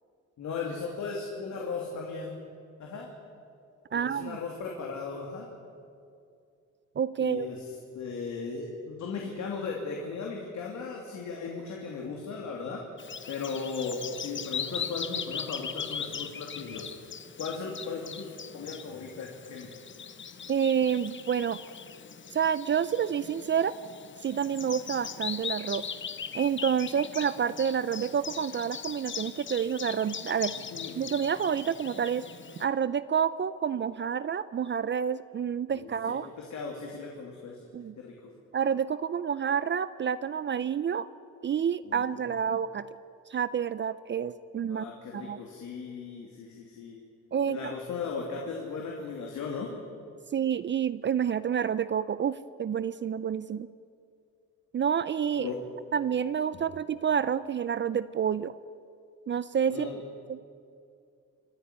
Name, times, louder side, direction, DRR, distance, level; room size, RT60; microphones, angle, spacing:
voice 1, 0.4-2.4 2.8-3.1 3.9-5.5 7.2-7.7 7.9-12.8 13.3-16.9 17.4-19.7 30.6-31.0 35.7-35.9 36.2-37.7 38.0-38.3 41.8-42.2 44.7-47.0 47.5-49.7 55.4-55.6 56.5-56.6 59.7-60.0, left 4 dB, 70° left, -1 dB, 2.9 m, -37 dB
voice 2, 3.9-4.4 7.0-7.5 20.5-21.6 22.3-23.7 24.2-25.9 26.3-30.5 31.0-32.2 32.6-36.3 37.7-37.9 38.5-41.1 41.4-42.9 43.3-44.9 45.1-45.4 47.3-47.7 50.3-53.7 54.7-55.5 55.9-58.5 59.3-59.9 60.3-60.4, right 8 dB, 40° right, 16 dB, 0.5 m, -28 dB
Bird vocalization bird call bird song, 13.0-32.7, left 7 dB, 40° left, 1.0 m, -40 dB
27.0 x 9.9 x 9.8 m, 2.4 s
cardioid pair, 90°, 30 cm